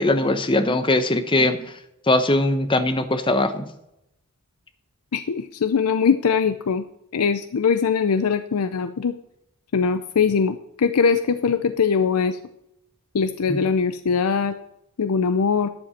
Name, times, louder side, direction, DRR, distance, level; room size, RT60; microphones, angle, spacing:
voice 1, 0.0-1.7 2.1-3.6 13.5-13.6, left 2 dB, 25° left, 10 dB, 0.8 m, -20 dB
voice 2, 5.1-6.8 7.1-9.1 9.7-12.4 13.1-14.6 15.0-15.7, left 5 dB, 85° left, 10 dB, 0.5 m, -21 dB
12.5 x 7.8 x 4.3 m, 0.83 s
head